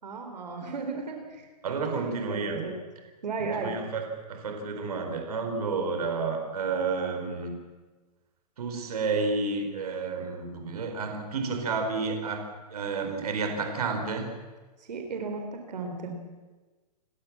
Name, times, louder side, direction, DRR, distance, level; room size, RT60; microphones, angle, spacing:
voice 1, 0.0-1.5 2.0-2.7 3.2-3.8 14.9-16.3, right 4 dB, 90° right, 4 dB, 4.3 m, -35 dB
voice 2, 1.6-2.7 3.4-7.5 8.6-14.3, right 4 dB, 65° right, 5 dB, 4.6 m, -31 dB
29.0 x 14.5 x 7.5 m, 1.3 s
hypercardioid pair, 170°, 21 cm